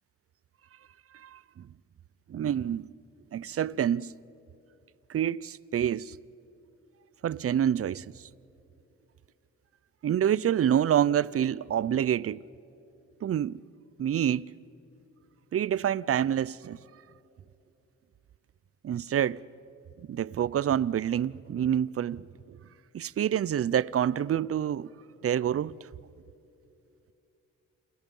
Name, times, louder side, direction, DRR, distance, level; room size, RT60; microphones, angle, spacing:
voice 1, 2.3-2.9 3.3-4.1 5.1-6.2 7.2-8.1 10.0-12.4 13.2-13.6 14.0-14.4 15.5-16.8 18.8-19.4 20.1-22.3 22.9-24.9 25.2-25.8, right 10 dB, 50° right, 0.5 m, -27 dB
29.0 x 28.5 x 5.4 m
cardioid pair, 95°, 31 cm